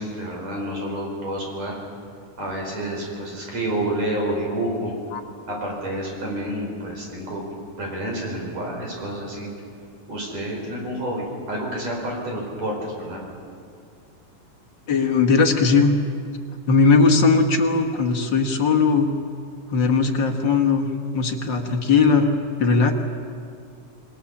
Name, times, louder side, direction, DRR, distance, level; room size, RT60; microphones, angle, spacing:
voice 1, 0.0-1.8 2.4-4.9 5.5-9.5 10.1-13.2, right 1 dB, 50° right, -1 dB, 6.2 m, -29 dB
voice 2, 14.9-15.9 16.7-19.1 19.7-20.9 21.1-22.3 22.6-22.9, left 4 dB, 50° left, 3 dB, 1.5 m, -18 dB
28.0 x 20.0 x 7.2 m, 2.3 s
omnidirectional pair, 3.8 m